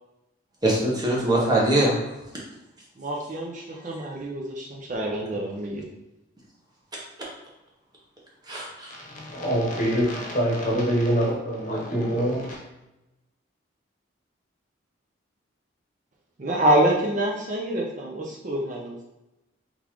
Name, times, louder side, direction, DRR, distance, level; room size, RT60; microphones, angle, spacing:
voice 1, 0.6-1.9 8.5-8.9, right 1 dB, 20° right, -4 dB, 1.0 m, -22 dB
voice 2, 3.0-5.8 16.4-19.0, right 1 dB, 40° right, -1 dB, 0.5 m, -26 dB
voice 3, 8.9-12.6, equal, 40° left, -3 dB, 1.0 m, -25 dB
3.8 x 3.5 x 3.0 m, 0.95 s
head